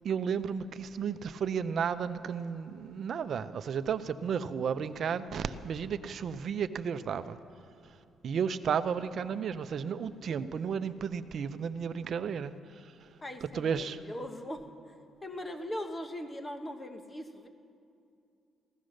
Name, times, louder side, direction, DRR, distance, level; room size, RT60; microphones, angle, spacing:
voice 1, 0.0-7.4 8.2-12.5 13.5-14.0, right 7 dB, 60° right, 12 dB, 0.6 m, -33 dB
voice 2, 13.2-14.9 15.2-17.5, left 1 dB, 25° left, 7 dB, 1.2 m, -40 dB
16.5 x 13.5 x 6.5 m, 2.6 s
cardioid pair, 90°, 0 cm